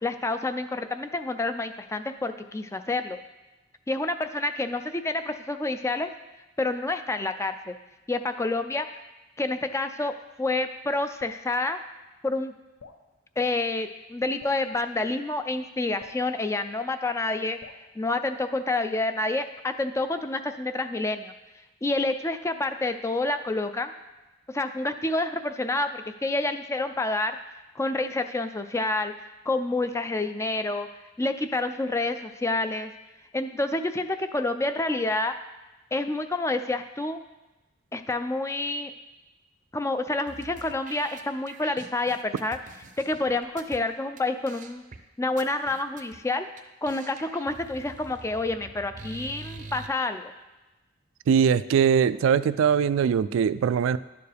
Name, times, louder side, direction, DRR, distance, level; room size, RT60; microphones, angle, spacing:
voice 1, 0.0-3.2 3.9-6.1 6.6-7.8 8.1-8.9 9.4-11.8 12.2-12.5 13.4-17.6 18.0-21.3 21.8-23.9 24.5-27.4 27.8-29.1 29.5-30.9 31.2-32.9 33.3-35.3 35.9-37.2 37.9-38.9 39.7-42.6 43.0-44.8 45.2-46.5 46.8-50.3, left 2 dB, 15° left, 9 dB, 0.4 m, -28 dB
Drip, 11.2-11.5 12.8-13.1 14.4-14.7 16.0-16.3 17.6-17.9, left 4 dB, 80° left, 0.7 m, -48 dB
sound 1, 40.3-43.8 44.2-44.3 44.5-45.0 45.4-46.2 46.6-46.7 46.9-49.9, right 3 dB, 40° right, 0.6 m, -45 dB
voice 2, 51.3-54.0, right 7 dB, 80° right, 16 dB, 0.3 m, -21 dB
11.0 x 6.9 x 3.4 m, 1.1 s
head